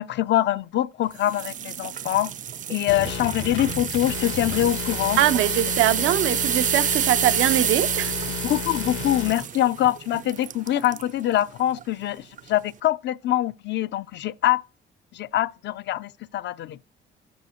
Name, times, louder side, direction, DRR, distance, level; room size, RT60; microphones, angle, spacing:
voice 1, 0.0-2.3 2.7-5.2 8.3-14.6 15.1-16.8, left 13 dB, 65° left, 0.4 m, -24 dB
sound 1, 1.2-11.1 11.6-11.8 12.4-12.5, right 9 dB, 40° right, 0.4 m, -29 dB
sound 2, 2.9-9.3, left 6 dB, 85° left, 1.3 m, -33 dB
voice 2, 5.2-8.2, right 12 dB, 85° right, 0.6 m, -22 dB
12.5 x 4.9 x 2.9 m
cardioid pair, 90°, 20 cm